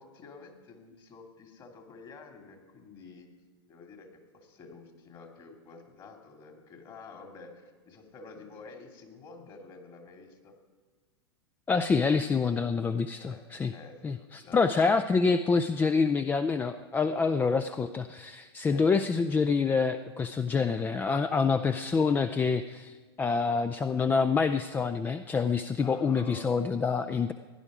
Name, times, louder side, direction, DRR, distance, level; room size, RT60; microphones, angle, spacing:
voice 1, 0.0-3.3 3.7-4.1 4.3-10.6 13.2-13.4 13.7-14.8 18.6-18.8 20.5-20.7 25.8-26.7, left 4 dB, 35° left, 4 dB, 2.4 m, -49 dB
voice 2, 11.7-13.7 14.0-27.3, left 5 dB, 15° left, 11 dB, 0.4 m, -27 dB
16.0 x 10.5 x 5.0 m, 1.4 s
figure-of-eight pair, 95°, 14 cm